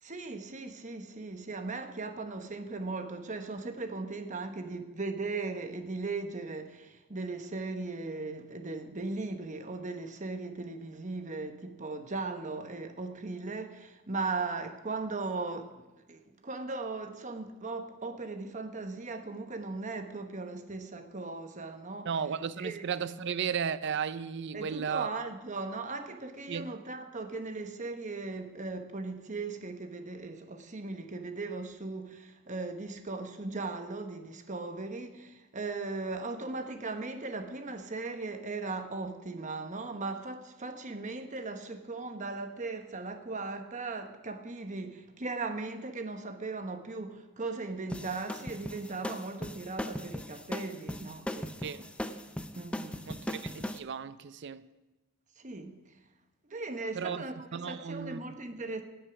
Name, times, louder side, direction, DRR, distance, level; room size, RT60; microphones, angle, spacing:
voice 1, 0.0-22.1 22.6-22.8 24.5-51.8 52.5-53.3 55.4-55.8 56.5-58.8, right 3 dB, 35° right, 1.0 m, -38 dB
voice 2, 22.1-25.2 26.5-26.7 51.6-51.9 53.1-54.6 57.0-57.2 57.5-58.2, right 7 dB, 55° right, 0.4 m, -34 dB
sound 1, 47.9-53.8, left 1 dB, 5° left, 0.4 m, -38 dB
18.5 x 6.7 x 5.9 m
head